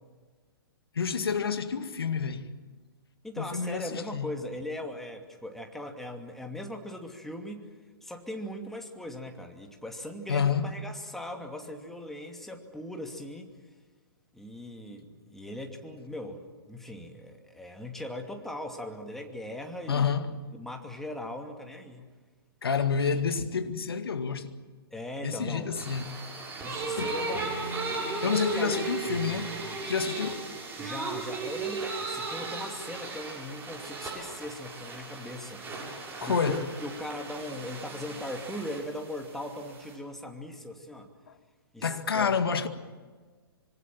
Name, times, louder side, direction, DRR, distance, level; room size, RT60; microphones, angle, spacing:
voice 1, 0.9-2.5 3.4-4.3 10.3-10.7 19.9-20.3 22.6-24.5 25.2-26.1 27.0-27.1 28.2-29.5 29.9-30.5 36.2-36.7 41.8-42.7, left 6 dB, 70° left, 2.1 m, -29 dB
voice 2, 3.2-7.7 8.0-13.5 14.3-20.1 20.5-22.1 24.9-25.8 26.5-27.7 28.2-28.9 30.8-41.1 41.7-42.3, left 1 dB, ahead, 2.7 m, -39 dB
sound 1, 25.8-39.9, right 3 dB, 15° right, 7.3 m, -36 dB
25.5 x 25.0 x 7.6 m
figure-of-eight pair, 120°, 13 cm